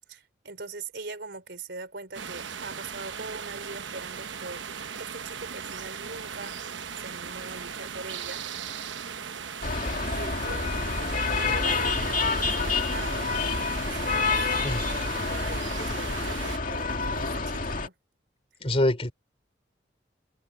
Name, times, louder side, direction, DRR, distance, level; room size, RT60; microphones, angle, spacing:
voice 1, 0.1-4.6 5.0-6.6 7.0-8.4 10.1-10.7 11.3-13.3 13.9-17.9, right 3 dB, 65° right, 4.5 m, -42 dB
sound 1, 2.1-16.6, right 7 dB, 85° right, 1.0 m, -38 dB
sound 2, 9.6-17.9, left 4 dB, 50° left, 2.3 m, -28 dB
voice 2, 18.6-19.1, left 1 dB, 35° left, 3.4 m, -24 dB
head